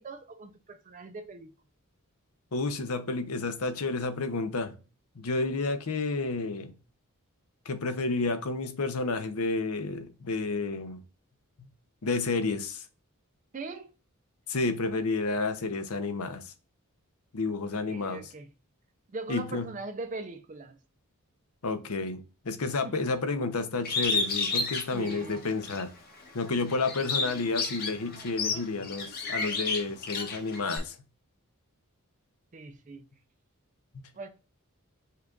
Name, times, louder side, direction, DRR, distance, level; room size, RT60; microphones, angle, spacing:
voice 1, 0.0-1.5 13.5-13.9 17.9-18.5 19.1-20.8 22.8-23.0 24.9-25.4 32.5-33.0 34.2-34.3, right 3 dB, 35° right, 0.5 m, -40 dB
voice 2, 2.5-4.7 5.2-6.7 7.7-11.0 12.0-12.8 14.5-16.5 17.3-18.2 19.3-19.7 21.6-25.9 26.3-30.9, left 3 dB, 75° left, 0.8 m, -30 dB
Bird, 23.8-25.8 26.3-30.8, left 4 dB, 45° left, 1.2 m, -31 dB
5.6 x 2.4 x 3.7 m
head